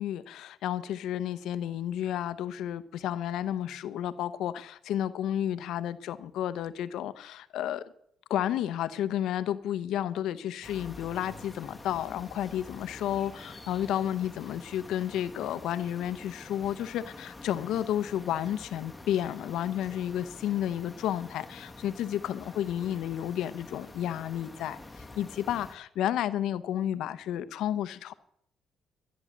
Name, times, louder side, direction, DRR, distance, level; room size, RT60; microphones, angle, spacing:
voice 1, 0.0-7.8 8.3-24.8 25.1-28.1, left 11 dB, 85° left, 0.8 m, -31 dB
sound 1, 10.6-25.7, left 2 dB, 15° left, 1.4 m, -47 dB
13.5 x 9.6 x 7.3 m
cardioid pair, 90°, 0 cm